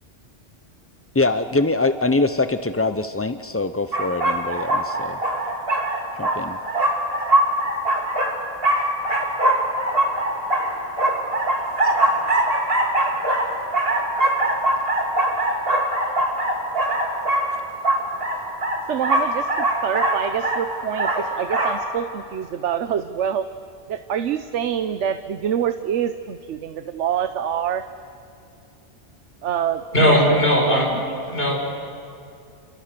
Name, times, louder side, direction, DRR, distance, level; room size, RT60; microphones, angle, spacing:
voice 1, 1.1-5.2 6.2-6.6, left 3 dB, 25° left, 10 dB, 0.3 m, -23 dB
sound 1, 3.9-21.8, right 1 dB, 55° right, 3.1 m, -22 dB
voice 2, 18.9-23.5 23.9-27.8 29.4-31.3, right 9 dB, 90° right, 10 dB, 1.1 m, -26 dB
voice 3, 29.9-31.0 31.3-31.6, equal, 55° left, 0 dB, 6.0 m, -18 dB
28.5 x 28.0 x 6.7 m, 2.7 s
omnidirectional pair, 1.2 m